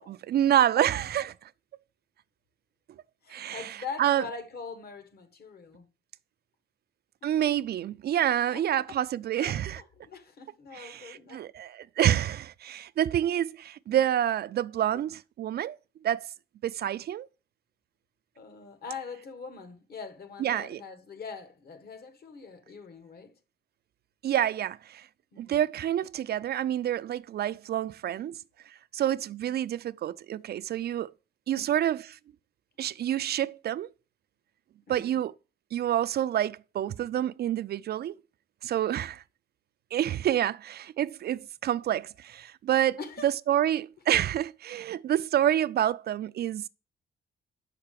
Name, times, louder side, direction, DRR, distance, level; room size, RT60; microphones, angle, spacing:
voice 1, 0.0-1.5 3.3-4.2 7.2-9.8 10.7-15.8 16.0-16.3 16.6-17.3 20.4-20.8 24.2-25.1 25.4-28.4 28.9-31.1 31.5-32.2 32.8-33.9 34.9-35.3 35.7-38.2 38.6-39.2 39.9-46.7, right 11 dB, 55° right, 0.4 m, -28 dB
voice 2, 0.5-0.8 3.2-5.9 7.2-7.3 8.5-9.0 9.4-11.4 18.4-23.4 25.3-25.6 28.2-28.3 31.6-31.7 34.9-35.3 43.0-43.3, left 5 dB, 50° left, 1.6 m, -43 dB
6.5 x 5.7 x 6.7 m
cardioid pair, 90°, 20 cm